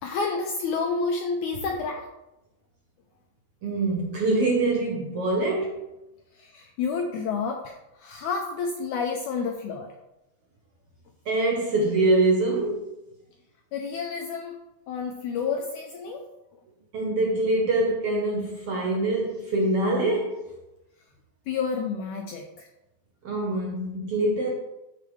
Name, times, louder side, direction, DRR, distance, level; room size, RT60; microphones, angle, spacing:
voice 1, 0.0-2.1 6.3-9.9 13.7-14.6 14.9-16.3 21.5-22.7, left 5 dB, 85° left, 2 dB, 1.7 m, -30 dB
voice 2, 3.6-5.9 11.2-12.9 16.9-20.4 23.2-24.5, right 2 dB, 70° right, -2 dB, 1.4 m, -24 dB
13.0 x 4.8 x 3.2 m, 0.93 s
omnidirectional pair, 4.2 m